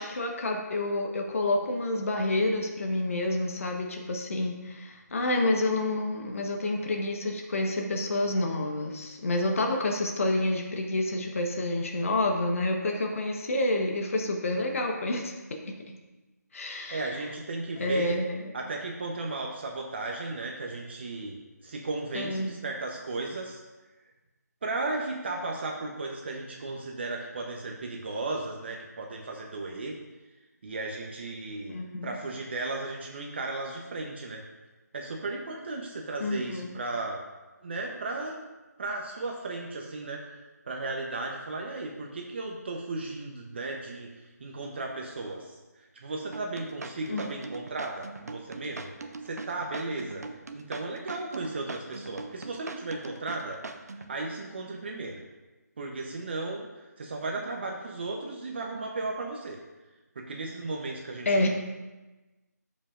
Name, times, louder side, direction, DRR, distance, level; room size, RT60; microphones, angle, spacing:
voice 1, 0.0-15.4 16.5-17.1 17.8-18.5 22.1-22.5 31.7-32.1 36.2-36.8 47.1-47.3 61.2-61.5, left 2 dB, 50° left, 2 dB, 1.2 m, -28 dB
voice 2, 16.6-18.1 18.5-23.6 24.6-29.9 30.6-34.4 34.9-37.2 37.6-38.4 38.8-40.2 40.7-50.2 50.5-53.6 53.9-55.2 55.8-59.6 60.1-61.5, right 2 dB, 35° right, 0 dB, 0.9 m, -35 dB
sound 1, 46.3-54.1, right 3 dB, 65° right, 0.8 m, -41 dB
12.0 x 5.5 x 2.5 m, 1.1 s
figure-of-eight pair, 160°, 9 cm